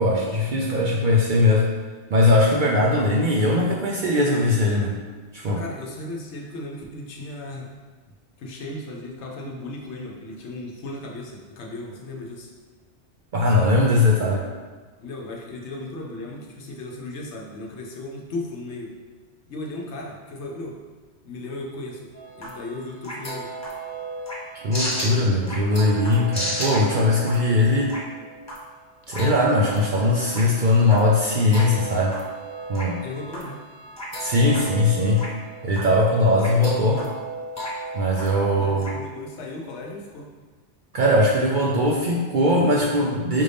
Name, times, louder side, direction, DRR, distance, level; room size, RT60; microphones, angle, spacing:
voice 1, 0.0-1.7 2.1-4.9 5.3-5.6 13.3-14.4 24.6-28.0 29.1-32.2 32.7-33.0 34.2-35.3 35.6-37.0 37.9-38.8 40.9-43.4, left 2 dB, 55° right, -3 dB, 0.6 m, -20 dB
voice 2, 5.6-7.7 8.4-12.5 15.0-18.9 19.5-20.8 21.2-23.5 33.0-33.6 38.5-40.3, left 2 dB, 70° left, -1 dB, 1.0 m, -36 dB
sound 1, 22.1-38.9, right 1 dB, 15° left, 1.1 m, -34 dB
5.3 x 2.6 x 3.3 m, 1.4 s
omnidirectional pair, 1.2 m